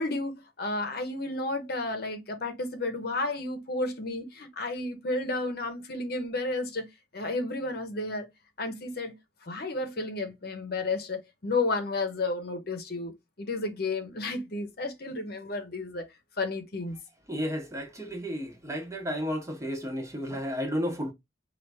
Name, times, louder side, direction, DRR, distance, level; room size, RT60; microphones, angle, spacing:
voice 1, 0.0-6.9 7.1-8.3 8.6-9.1 9.4-13.1 13.4-16.1 16.4-17.0, left 2 dB, 55° left, 0.8 m, -32 dB
voice 2, 17.3-21.1, equal, 15° right, 0.7 m, -32 dB
4.3 x 2.4 x 3.3 m
head